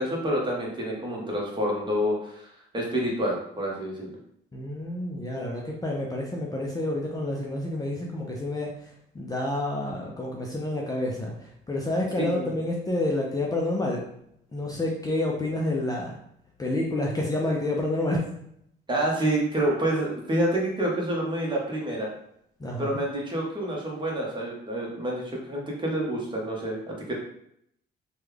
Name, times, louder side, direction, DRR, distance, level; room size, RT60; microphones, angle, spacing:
voice 1, 0.0-4.1 12.2-12.5 18.9-22.1 22.8-27.2, right 1 dB, 25° right, -2 dB, 1.1 m, -28 dB
voice 2, 4.5-14.0 14.5-16.2 16.6-18.2 22.6-23.0, left 1 dB, 20° left, -2 dB, 0.5 m, -29 dB
3.1 x 2.3 x 3.4 m, 0.72 s
cardioid pair, 90°, 20 cm